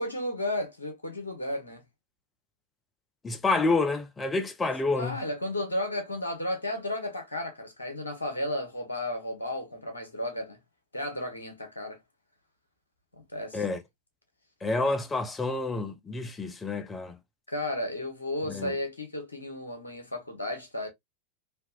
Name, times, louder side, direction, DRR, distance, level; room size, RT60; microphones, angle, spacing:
voice 1, 0.0-1.8 4.9-10.6 10.9-12.0 13.3-13.6 17.5-20.9, left 1 dB, 80° left, 1.2 m, -33 dB
voice 2, 3.2-5.2 13.5-13.8 14.6-17.2 18.5-18.7, left 3 dB, 15° left, 0.6 m, -28 dB
3.4 x 2.9 x 2.4 m
figure-of-eight pair, 90°, 0 cm